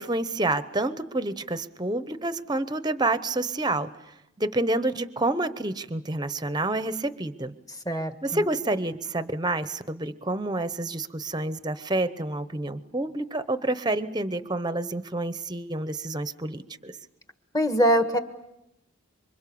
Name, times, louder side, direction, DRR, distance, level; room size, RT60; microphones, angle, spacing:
voice 1, 0.0-3.9 4.4-7.5 8.2-17.0, right 2 dB, 20° right, 13 dB, 0.8 m, -28 dB
voice 2, 7.8-8.4 17.5-18.2, equal, 15° left, 8 dB, 1.4 m, -23 dB
27.0 x 24.5 x 7.0 m, 0.87 s
head